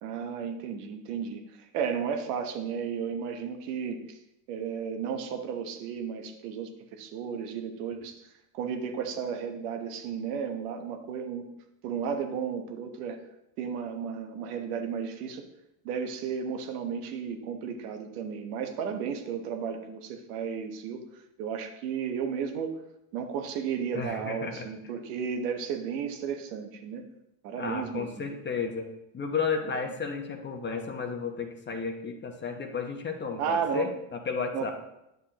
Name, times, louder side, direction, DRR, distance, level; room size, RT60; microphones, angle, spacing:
voice 1, 0.0-4.2 4.5-8.3 8.5-11.5 11.8-13.2 13.6-15.4 15.8-22.8 23.1-27.0 27.4-28.4 33.4-33.9 34.5-34.7, right 7 dB, 75° right, 5 dB, 1.1 m, -33 dB
voice 2, 23.9-24.7 27.6-28.9 29.1-34.7, left 5 dB, 25° left, 4 dB, 1.0 m, -33 dB
9.3 x 6.8 x 2.9 m, 0.86 s
supercardioid pair, 105°, 47 cm